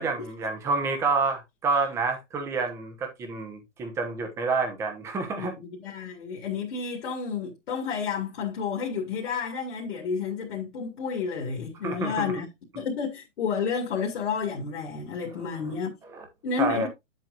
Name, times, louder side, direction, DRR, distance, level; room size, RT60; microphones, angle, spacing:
voice 1, 0.0-5.5 11.8-12.3 15.4-15.5 16.1-16.2 16.6-16.9, right 4 dB, 10° right, 1.0 m, -28 dB
voice 2, 5.3-12.5 12.7-16.0 16.4-16.9, left 6 dB, 55° left, 2.2 m, -31 dB
8.7 x 7.7 x 2.5 m
hypercardioid pair, 170°, 37 cm